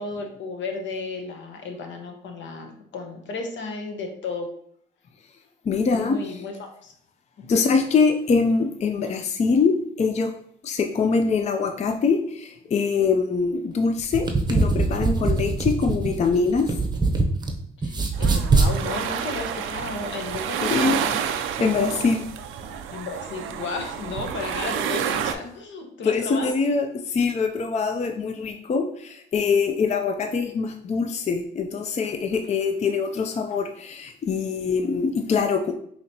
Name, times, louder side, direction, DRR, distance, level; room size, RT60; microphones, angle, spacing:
voice 1, 0.0-4.5 5.9-6.9 7.4-7.6 17.8-20.8 21.0-21.3 22.9-26.5, left 3 dB, 70° left, 4 dB, 0.9 m, -33 dB
voice 2, 5.7-6.4 7.5-10.3 10.6-16.7 20.6-21.0 21.6-22.3 26.0-35.7, left 5 dB, 35° left, 6 dB, 0.4 m, -23 dB
sound 1, 14.0-17.5 17.8-18.7, right 3 dB, 20° right, 0.7 m, -22 dB
sound 2, 18.1-25.3, right 8 dB, 90° right, 0.4 m, -29 dB
5.0 x 2.9 x 2.7 m, 0.67 s
cardioid pair, 90°, 20 cm